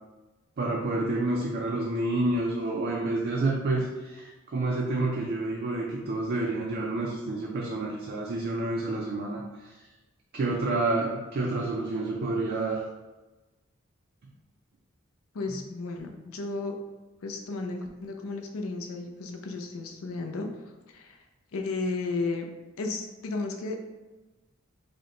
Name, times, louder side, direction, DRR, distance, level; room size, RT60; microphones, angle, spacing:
voice 1, 0.6-9.7 10.3-12.8, right 2 dB, 50° right, -1 dB, 0.4 m, -29 dB
voice 2, 15.3-16.7 17.2-20.5 20.9-21.2 21.5-22.5 22.8-23.8, left 3 dB, 85° left, 3 dB, 0.5 m, -33 dB
4.9 x 2.1 x 2.9 m, 1.1 s
head